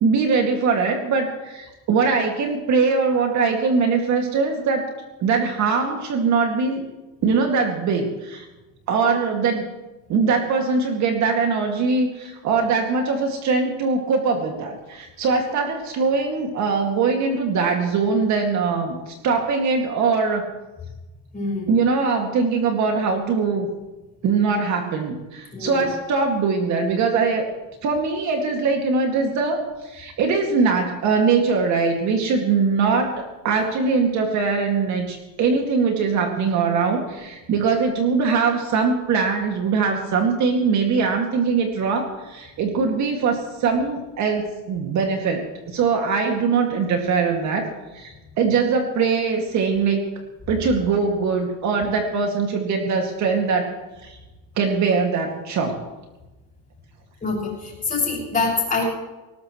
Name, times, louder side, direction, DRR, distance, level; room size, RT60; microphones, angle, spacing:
voice 1, 0.0-4.9 5.2-6.8 7.2-8.5 8.9-9.7 10.1-20.4 21.7-23.7 24.2-27.5 27.8-47.7 47.9-50.1 50.5-53.7 54.0-54.2 54.6-55.8, right 4 dB, 45° right, 2 dB, 2.3 m, -22 dB
voice 2, 21.3-21.7 25.5-25.9 57.2-58.8, left 3 dB, 20° left, -1 dB, 6.2 m, -25 dB
20.0 x 19.0 x 3.2 m, 1.1 s
cardioid pair, 145°, 39 cm